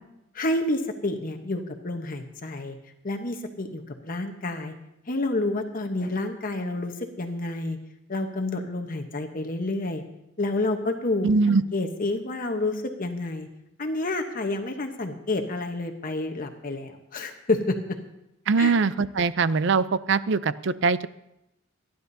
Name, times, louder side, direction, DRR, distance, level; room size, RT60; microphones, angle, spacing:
voice 1, 0.3-2.8 3.0-4.7 5.1-7.8 8.1-10.0 10.4-13.5 13.8-18.0 18.6-18.8, left 2 dB, 45° left, 5 dB, 1.0 m, -29 dB
voice 2, 11.2-11.6 18.5-21.1, right 4 dB, 65° right, 16 dB, 0.5 m, -22 dB
27.5 x 10.5 x 2.7 m, 0.85 s
head